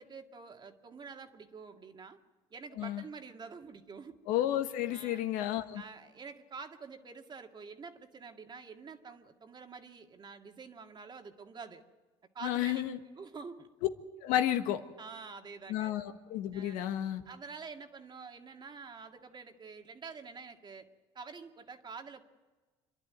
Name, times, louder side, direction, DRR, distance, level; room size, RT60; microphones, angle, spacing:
voice 1, 0.0-2.2 2.5-4.2 4.9-5.2 5.7-11.8 12.3-12.8 13.2-13.7 15.0-15.9 16.5-16.9 17.3-20.9 21.1-22.2, right 5 dB, 35° right, 5 dB, 2.0 m, -47 dB
voice 2, 4.3-5.8 12.4-13.0 14.2-14.8 15.7-17.2, left 12 dB, 80° left, 8 dB, 1.5 m, -32 dB
27.0 x 11.5 x 9.7 m, 1.3 s
supercardioid pair, 90°, 13 cm